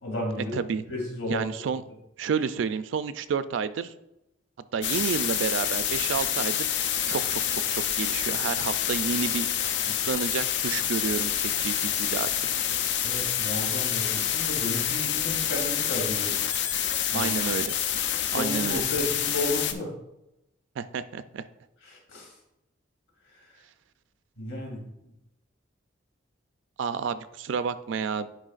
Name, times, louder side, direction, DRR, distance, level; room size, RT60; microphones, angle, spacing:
voice 1, 0.0-0.5 0.9-1.6 9.9-10.0 13.0-16.3 17.1-17.4 18.3-19.9 21.8-22.3 24.4-24.8, left 1 dB, 85° left, -1 dB, 2.3 m, -33 dB
voice 2, 0.5-0.8 1.3-1.8 2.2-3.9 4.7-6.5 7.1-9.5 9.8-12.3 17.1-17.7 18.3-18.8 20.8-21.4 26.8-28.3, right 6 dB, 75° right, 13 dB, 0.3 m, -30 dB
sound 1, 4.8-19.7, left 9 dB, 60° left, 0.5 m, -27 dB
10.0 x 4.6 x 2.4 m, 0.88 s
head